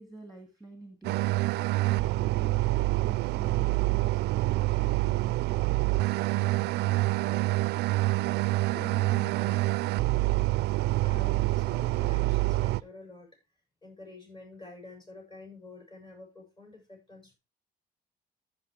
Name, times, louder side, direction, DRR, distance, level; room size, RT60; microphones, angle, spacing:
voice 1, 0.0-2.6 3.0-8.1 8.7-9.7, right 2 dB, ahead, 4 dB, 2.1 m, -48 dB
sound 1, 1.0-12.8, right 19 dB, 75° right, 0.4 m, -26 dB
voice 2, 10.9-13.3 13.8-17.3, left 3 dB, 30° left, 1 dB, 7.6 m, -48 dB
14.0 x 6.2 x 3.3 m, 0.25 s
cardioid pair, 110°, 17 cm